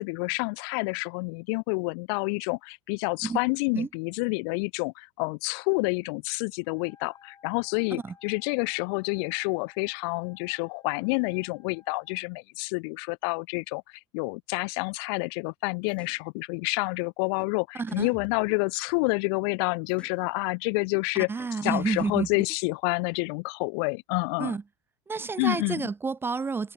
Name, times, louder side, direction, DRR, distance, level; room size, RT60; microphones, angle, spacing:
voice 1, 0.0-13.8 14.1-21.3 21.6-24.6 25.4-25.8, left 34 dB, 50° left, 1.0 m, -28 dB
Wind instrument woodwind instrument, 6.6-12.2, left 6 dB, 25° left, 5.9 m, -59 dB
sound 1, 15.9-16.2 17.4-17.5 17.9-19.3 19.9-20.2 21.4-21.5 21.9-23.0, left 2 dB, 5° left, 4.1 m, -51 dB
voice 2, 17.7-18.1 21.3-22.3 24.4-24.6 25.1-26.7, right 4 dB, 15° right, 0.8 m, -29 dB
figure-of-eight pair, 85°, 16 cm